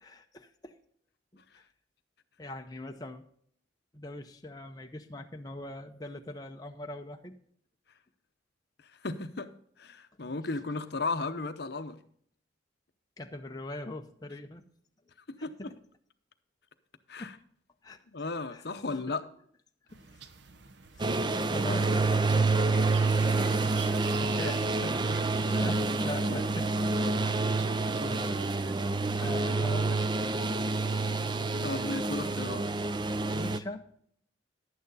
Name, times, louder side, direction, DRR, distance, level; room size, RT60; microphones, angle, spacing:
voice 1, 0.0-0.7 1.3-1.6 2.4-3.3 3.9-7.4 13.2-14.6 15.4-15.8 17.2-17.4 17.8-18.0 18.5-19.0 19.9-20.2 20.9-22.6 24.2-25.2 25.4-26.7 27.3-28.6 29.2-30.4 31.6-32.2 33.3-33.9, left 1 dB, 20° left, 0.6 m, -42 dB
voice 2, 9.0-9.5 9.8-12.0 15.4-15.5 17.1-17.3 18.1-19.2 24.4-24.5 24.8-25.2 26.2-26.5 31.6-32.6, left 3 dB, 55° left, 0.7 m, -35 dB
sound 1, 19.9-28.7, right 7 dB, 65° right, 0.8 m, -47 dB
sound 2, 21.0-33.6, right 3 dB, 25° right, 0.4 m, -28 dB
11.5 x 9.0 x 4.0 m
head